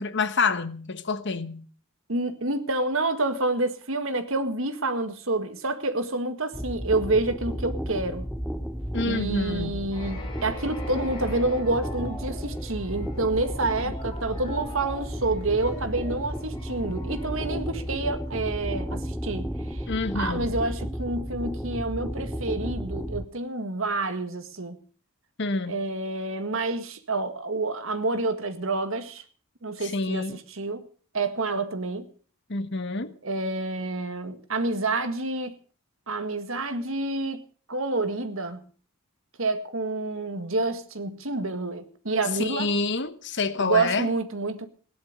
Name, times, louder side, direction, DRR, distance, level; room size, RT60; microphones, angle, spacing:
voice 1, 0.0-1.6 8.9-9.9 19.9-20.5 25.4-25.7 29.8-30.4 32.5-33.1 42.4-44.1, left 3 dB, 55° left, 1.2 m, -28 dB
voice 2, 2.1-8.3 9.0-19.9 20.1-24.8 25.7-29.2 29.6-30.8 31.1-32.1 33.2-35.5 36.1-37.4 37.7-38.6 39.4-42.7 43.6-44.7, right 2 dB, 65° right, 1.8 m, -28 dB
sound 1, 6.5-23.2, equal, ahead, 0.8 m, -33 dB
sound 2, 9.9-18.7, equal, 20° left, 5.7 m, -43 dB
17.5 x 11.0 x 6.6 m
head